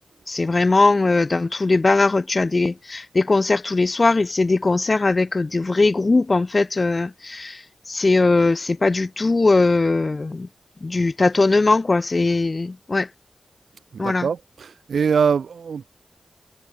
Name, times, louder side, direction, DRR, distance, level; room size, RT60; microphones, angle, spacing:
voice 1, 0.3-10.5 10.8-13.1 14.0-14.3, left 3 dB, 45° left, 2.0 m, -20 dB
voice 2, 13.9-15.9, right 6 dB, 90° right, 6.0 m, -23 dB
cardioid pair, 50°, 0 cm